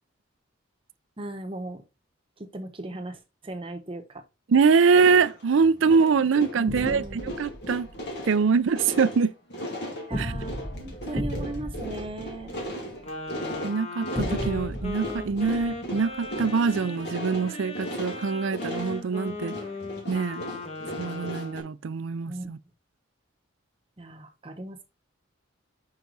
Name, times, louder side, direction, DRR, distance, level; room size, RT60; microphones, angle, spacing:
voice 1, 1.2-1.8 2.4-4.2 6.5-7.4 10.0-12.6 22.3-22.5 24.0-24.8, right 1 dB, 30° right, 1.0 m, -37 dB
voice 2, 4.5-7.9 8.3-9.3 10.2-10.3 13.6-19.5 20.1-20.4 21.0-22.6, right 5 dB, 70° right, 0.4 m, -23 dB
sound 1, 4.9-21.6, equal, 60° left, 2.1 m, -37 dB
sound 2, 6.7-8.1 10.1-13.1 14.1-16.3, equal, 5° left, 1.1 m, -35 dB
Wind instrument woodwind instrument, 13.0-21.6, left 2 dB, 35° left, 1.4 m, -38 dB
5.7 x 4.7 x 3.9 m
head